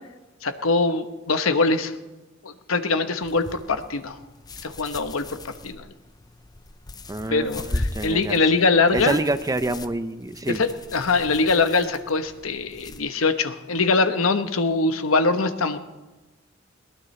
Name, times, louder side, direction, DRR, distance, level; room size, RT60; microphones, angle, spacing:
voice 1, 0.4-1.9 2.4-4.2 4.6-5.2 5.6-5.9 7.3-9.2 10.5-15.8, left 3 dB, 80° left, 9 dB, 1.1 m, -22 dB
sound 1, 3.2-13.0, left 2 dB, 20° left, 0.6 m, -37 dB
voice 2, 7.1-8.4 8.9-10.6, right 2 dB, 15° right, 11 dB, 0.6 m, -27 dB
22.0 x 18.5 x 3.3 m, 1.1 s
head